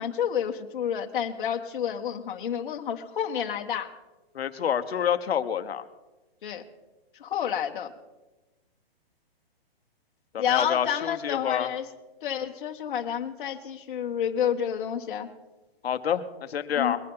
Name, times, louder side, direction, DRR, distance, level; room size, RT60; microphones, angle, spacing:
voice 1, 0.0-3.9 6.4-6.6 7.2-7.9 10.4-11.9 12.2-15.3 16.8-17.0, left 9 dB, 55° left, 3 dB, 1.4 m, -29 dB
voice 2, 4.3-5.8 10.3-11.7 15.8-17.0, left 8 dB, 80° left, 10 dB, 1.2 m, -28 dB
22.0 x 10.0 x 3.9 m, 1.1 s
hypercardioid pair, 170°, 30 cm